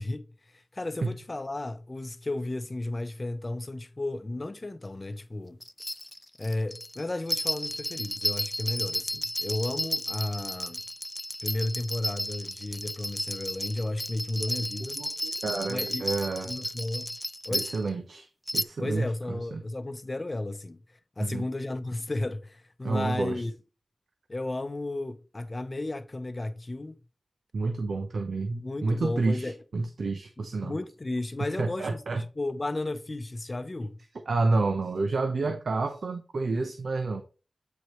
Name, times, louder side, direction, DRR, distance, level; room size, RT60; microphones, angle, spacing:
voice 1, 0.0-5.6 6.4-10.8 11.4-15.0 15.7-16.1 16.4-17.1 17.4-17.7 18.8-23.5 24.3-27.0 28.5-29.6 30.4-34.0, left 2 dB, 35° left, 0.7 m, -33 dB
sound 1, 5.6-17.9 18.5-18.6, left 1 dB, 10° left, 0.3 m, -33 dB
voice 2, 15.0-16.5 17.5-19.6 21.2-21.4 22.8-23.4 27.5-30.7 31.6-32.2 34.3-37.2, right 3 dB, 80° right, 0.7 m, -29 dB
8.2 x 4.6 x 3.1 m
wide cardioid pair, 75°, 0 cm